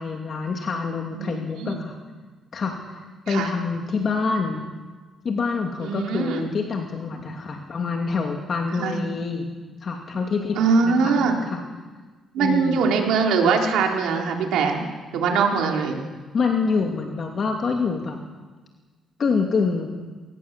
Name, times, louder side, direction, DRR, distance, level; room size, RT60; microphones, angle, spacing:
voice 1, 0.0-2.0 2.5-3.0 3.3-4.6 5.2-9.5 9.8-11.6 12.4-12.9 16.3-18.2 19.2-19.9, left 4 dB, 50° left, 2 dB, 2.5 m, -26 dB
voice 2, 1.2-1.8 3.3-3.5 5.8-6.5 8.8-9.0 10.6-11.4 12.3-14.9 15.1-16.0, right 5 dB, 85° right, 1 dB, 3.7 m, -22 dB
21.0 x 19.5 x 7.5 m, 1.3 s
cardioid pair, 90°, 0 cm